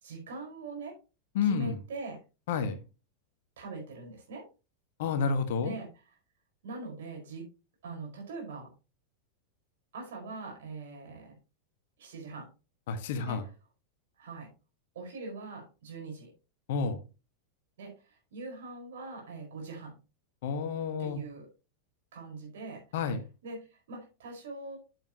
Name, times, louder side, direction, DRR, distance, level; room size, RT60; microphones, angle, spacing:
voice 1, 0.0-1.0 1.4-2.2 3.6-4.5 5.6-5.9 6.6-7.5 7.8-8.7 9.9-11.3 12.0-12.5 13.2-13.5 14.2-14.5 14.9-16.3 17.8-20.0 21.0-21.5 22.1-22.8 23.4-24.8, right 3 dB, 60° right, 4.8 m, -42 dB
voice 2, 1.3-1.8 2.5-2.8 5.0-5.7 12.9-13.4 16.7-17.0 20.4-21.2 22.9-23.2, left 5 dB, 55° left, 1.3 m, -30 dB
8.7 x 8.1 x 2.9 m
figure-of-eight pair, 90°, 0 cm